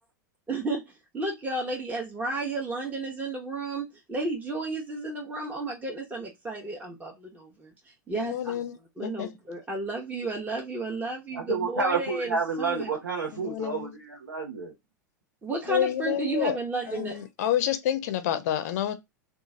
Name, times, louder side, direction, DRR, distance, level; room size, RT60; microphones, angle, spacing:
voice 1, 0.5-8.6 9.0-12.9 15.4-17.2, right 3 dB, 15° right, 0.8 m, -33 dB
voice 2, 8.1-8.7 9.0-9.3 13.3-13.9 15.7-16.6 16.9-18.9, left 11 dB, 55° left, 0.5 m, -28 dB
voice 3, 11.3-14.7, right 4 dB, 80° right, 0.8 m, -30 dB
3.0 x 2.4 x 3.6 m
figure-of-eight pair, 90°, 10 cm